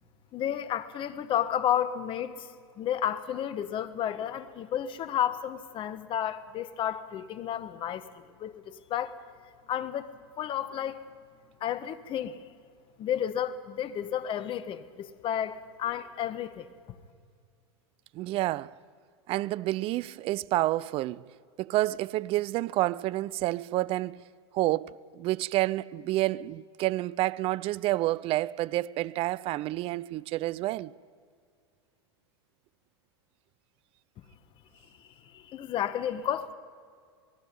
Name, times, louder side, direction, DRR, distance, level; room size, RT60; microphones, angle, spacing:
voice 1, 0.3-2.5 2.8-8.0 8.4-9.1 9.7-11.0 11.6-12.4 13.0-16.7 35.3-36.5, left 10 dB, 40° left, 1.4 m, -32 dB
voice 2, 18.1-18.8 19.3-21.2 21.6-24.2 24.5-30.9, right 17 dB, 45° right, 0.5 m, -29 dB
27.0 x 19.5 x 5.5 m
hypercardioid pair, 95°, 14 cm